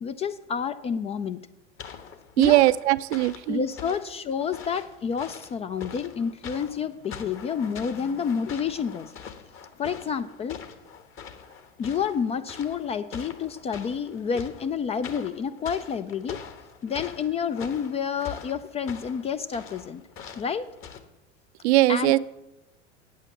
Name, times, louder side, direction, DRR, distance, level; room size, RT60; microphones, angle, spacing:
voice 1, 0.0-1.4 2.4-2.6 3.5-9.1 9.8-10.6 11.8-16.4 16.8-20.0 20.4-20.7 21.9-22.1, left 6 dB, 20° left, 12 dB, 0.3 m, -29 dB
sound 1, 1.8-21.0, left 7 dB, 35° left, 1.2 m, -44 dB
voice 2, 2.4-3.6 21.6-22.2, right 17 dB, 65° right, 16 dB, 0.5 m, -20 dB
8.9 x 8.4 x 7.2 m, 0.97 s
hypercardioid pair, 85°, 36 cm